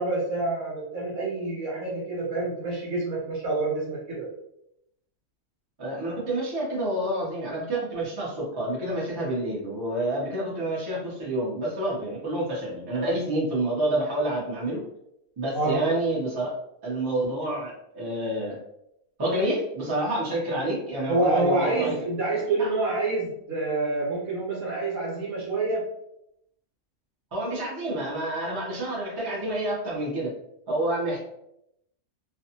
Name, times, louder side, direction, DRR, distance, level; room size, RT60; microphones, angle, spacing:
voice 1, 0.0-4.3 15.5-15.8 21.1-25.9, right 2 dB, 80° right, -5 dB, 1.2 m, -27 dB
voice 2, 5.8-14.8 15.4-16.5 16.8-18.6 19.2-21.9 27.3-30.3 30.7-31.2, right 1 dB, 25° right, -5 dB, 0.6 m, -28 dB
2.5 x 2.3 x 2.7 m, 0.80 s
omnidirectional pair, 1.4 m